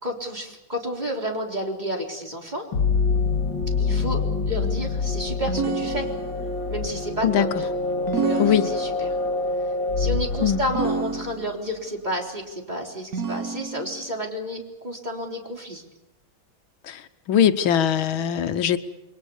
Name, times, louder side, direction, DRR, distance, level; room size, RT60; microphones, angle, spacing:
voice 1, 0.0-2.7 3.8-6.1 6.7-7.7 8.1-9.1 10.0-15.8, equal, 20° right, 1 dB, 4.0 m, -31 dB
sound 1, 2.7-11.4, left 4 dB, 65° left, 2.8 m, -26 dB
sound 2, 5.5-6.6 8.1-9.3 10.7-11.7 13.1-14.1, right 5 dB, 50° right, 1.7 m, -29 dB
voice 2, 7.2-7.5 8.4-8.7 10.4-10.6 16.8-17.0 17.3-18.8, left 9 dB, 85° left, 10 dB, 1.9 m, -21 dB
28.5 x 23.0 x 7.2 m, 0.97 s
omnidirectional pair, 2.1 m